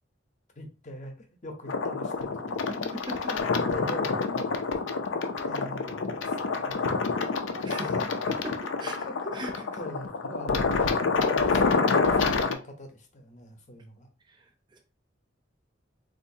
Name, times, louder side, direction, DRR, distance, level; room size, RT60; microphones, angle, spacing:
voice 1, 0.6-3.0 3.3-4.8 5.5-7.1 7.9-8.3 9.1-14.1, left 1 dB, 40° left, 0.8 m, -42 dB
sound 1, 1.7-12.5, left 4 dB, 80° left, 0.5 m, -27 dB
voice 2, 7.6-9.1 9.3-9.5 14.3-14.8, right 1 dB, 25° right, 0.6 m, -39 dB
3.9 x 2.6 x 2.6 m
head